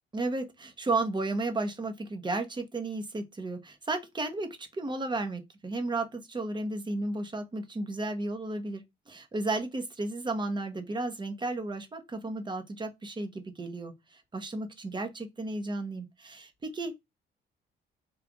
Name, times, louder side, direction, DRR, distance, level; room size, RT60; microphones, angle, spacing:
voice 1, 0.1-16.9, right 2 dB, 25° right, 0.9 m, -33 dB
3.3 x 2.4 x 3.8 m
cardioid pair, 90°, 20 cm